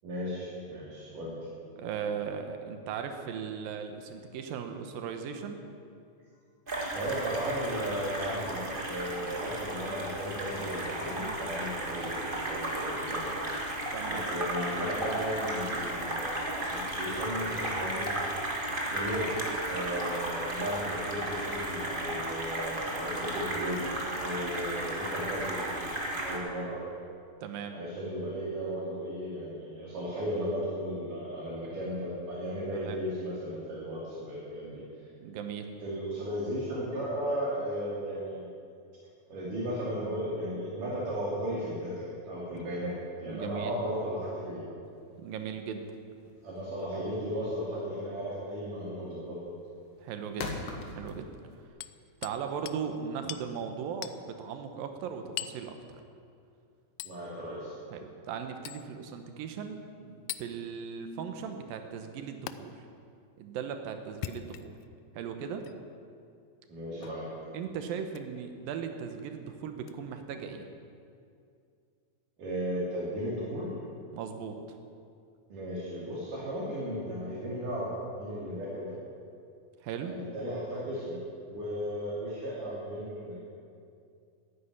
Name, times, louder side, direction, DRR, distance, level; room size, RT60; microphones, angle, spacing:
voice 1, 0.0-1.4 6.9-13.3 14.1-18.3 18.9-25.9 26.2-26.8 27.7-34.8 35.8-38.5 39.3-44.7 46.4-49.4 57.1-57.8 66.7-67.3 72.4-73.7 75.5-77.9 78.2-78.9 80.0-81.2 81.5-83.4, equal, 70° right, -6 dB, 4.2 m, -35 dB
voice 2, 1.8-5.6 11.1-11.4 13.9-14.2 14.9-15.0 27.4-27.8 32.7-33.0 35.2-35.7 42.5-42.6 43.3-43.7 45.2-45.8 47.0-47.1 50.0-50.5 50.9-51.3 52.2-55.8 57.9-62.9 63.4-64.8 65.1-65.6 67.5-70.7 74.1-74.8 79.8-80.1, right 7 dB, 90° right, 6 dB, 2.8 m, -38 dB
sound 1, 6.7-26.4, right 1 dB, 20° right, 1.4 m, -34 dB
sound 2, 44.9-51.7, left 3 dB, 50° left, 1.4 m, -43 dB
Hammer, 51.8-52.4 52.7-52.8 53.3-53.5 54.0-54.2 55.4-55.6 57.0-57.2 58.7-58.9 60.3-60.5 62.5-62.6 64.1-64.9 65.6-65.8 67.0-67.2 68.1-68.3 69.8-69.9, left 13 dB, 85° left, 1.6 m, -40 dB
13.0 x 9.9 x 9.7 m, 2.4 s
omnidirectional pair, 4.0 m